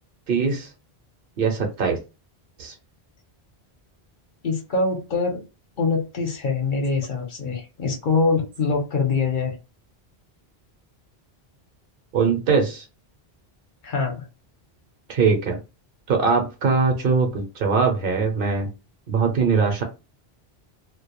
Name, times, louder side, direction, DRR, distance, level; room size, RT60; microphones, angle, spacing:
voice 1, 0.3-0.7 1.4-2.0 2.6-2.7 12.1-12.8 15.1-15.6 16.1-18.7 19.1-19.8, right 5 dB, 60° right, 4 dB, 0.8 m, -21 dB
voice 2, 4.4-5.4 5.8-9.6 13.8-14.3, left 4 dB, 55° left, 1 dB, 0.8 m, -24 dB
2.1 x 2.1 x 2.9 m, 0.28 s
omnidirectional pair, 1.1 m